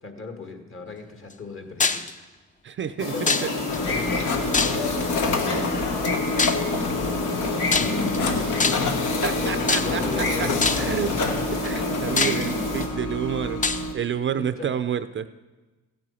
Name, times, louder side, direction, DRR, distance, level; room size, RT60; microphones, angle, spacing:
voice 1, 0.0-2.1 3.0-3.3 3.7-4.3 7.8-8.5 9.4-11.7 14.4-14.7, left 3 dB, 45° left, 5 dB, 1.8 m, -36 dB
sound 1, 1.8-2.1 3.3-3.8 4.5-5.1 6.4-6.7 7.7-8.2 8.6-9.0 9.7-10.1 10.6-11.0 11.6-11.7 12.2-12.8 13.6-13.8, left 4 dB, 25° left, 0.6 m, -24 dB
voice 2, 2.6-3.5 3.9-4.1 4.7-4.9 9.2-11.1 11.6-13.6 13.9-15.3, right 8 dB, 40° right, 12 dB, 0.5 m, -29 dB
sound 2, 3.0-12.9, left 2 dB, 90° left, 2.2 m, -29 dB
sound 3, 3.7-13.9, left 3 dB, 75° left, 1.3 m, -28 dB
15.0 x 7.7 x 5.6 m, 1.2 s
cardioid pair, 90°, 30 cm